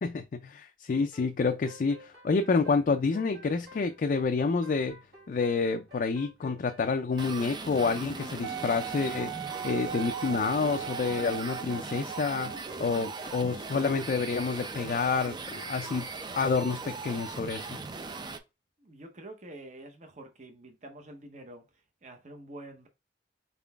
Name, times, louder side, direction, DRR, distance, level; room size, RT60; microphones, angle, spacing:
voice 1, 0.0-5.0 5.3-9.3 9.6-12.5 12.8-16.1 16.3-17.8, left 4 dB, 50° left, 0.3 m, -28 dB
sound 1, 0.9-13.6, left 2 dB, 60° right, 1.5 m, -52 dB
sound 2, 7.1-18.4, right 4 dB, 25° right, 0.4 m, -39 dB
Wind instrument woodwind instrument, 8.4-12.7 13.4-13.5, right 9 dB, 85° right, 0.4 m, -38 dB
voice 2, 18.8-22.9, right 1 dB, 40° right, 0.7 m, -47 dB
4.1 x 3.7 x 2.3 m
head